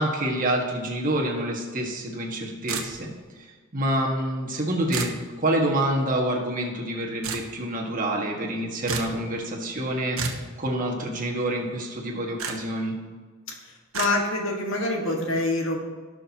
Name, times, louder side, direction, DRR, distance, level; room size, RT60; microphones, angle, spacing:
voice 1, 0.0-3.1 3.4-10.2 10.6-13.0, right 1 dB, 40° right, -1 dB, 1.6 m, -27 dB
sound 1, 2.7-3.2 4.9-5.2 7.2-7.5 8.9-9.2 10.1-10.5 12.4-12.5 13.9-14.1, right 5 dB, 90° right, 1.1 m, -30 dB
voice 2, 13.5-15.8, left 2 dB, 75° left, 1 dB, 1.6 m, -26 dB
16.5 x 6.3 x 2.9 m, 1.4 s
head